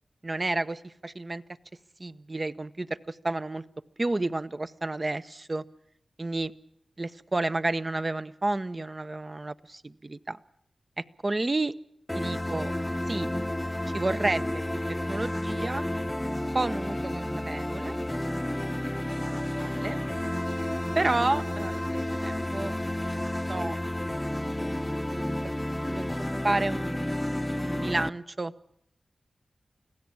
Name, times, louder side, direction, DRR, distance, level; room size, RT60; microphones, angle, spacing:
voice 1, 0.2-1.4 2.0-3.6 4.0-5.6 6.2-6.5 7.0-10.4 11.0-11.8 12.1-12.7 13.1-13.3 13.9-14.6 14.9-15.8 16.5-17.9 18.9-20.0 20.9-22.7 23.0-23.8 24.6-24.7 25.1-25.3 25.8-26.1 26.4-27.2 27.6-28.5, right 2 dB, 40° right, 12 dB, 0.9 m, -31 dB
sound 1, 12.1-28.1, left 1 dB, 15° left, 0.9 m, -31 dB
25.0 x 16.5 x 8.7 m, 0.72 s
cardioid pair, 45°, 0 cm